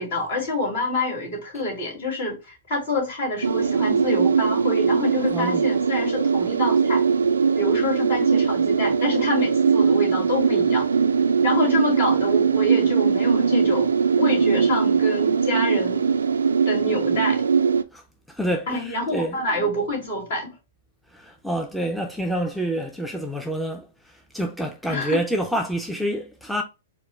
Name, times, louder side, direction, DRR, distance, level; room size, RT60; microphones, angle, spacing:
voice 1, 0.0-7.1 7.6-10.9 11.4-13.9 14.2-16.1 16.7-17.4 18.7-20.5 24.9-25.2, left 1 dB, 65° left, 2.1 m, -27 dB
sound 1, 3.4-17.8, right 6 dB, 80° right, 0.3 m, -20 dB
voice 2, 5.3-5.7 17.9-18.0 18.3-19.4 21.1-26.6, right 1 dB, ahead, 0.5 m, -28 dB
4.4 x 2.1 x 3.0 m
hypercardioid pair, 115°, 0 cm